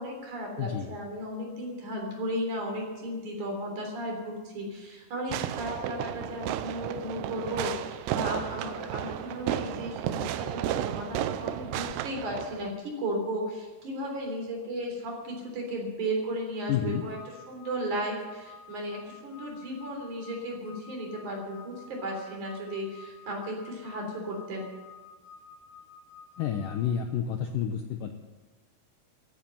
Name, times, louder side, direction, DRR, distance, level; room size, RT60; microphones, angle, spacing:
voice 1, 0.0-24.7, equal, 45° right, 1 dB, 4.6 m, -35 dB
Fireworks, 5.3-12.7, right 12 dB, 80° right, 2.6 m, -33 dB
voice 2, 16.7-17.0 26.4-28.2, left 8 dB, 90° left, 5 dB, 1.8 m, -30 dB
sound 1, 16.8-26.9, left 5 dB, 60° left, 1.5 m, -51 dB
15.0 x 9.9 x 9.1 m, 1.3 s
omnidirectional pair, 5.2 m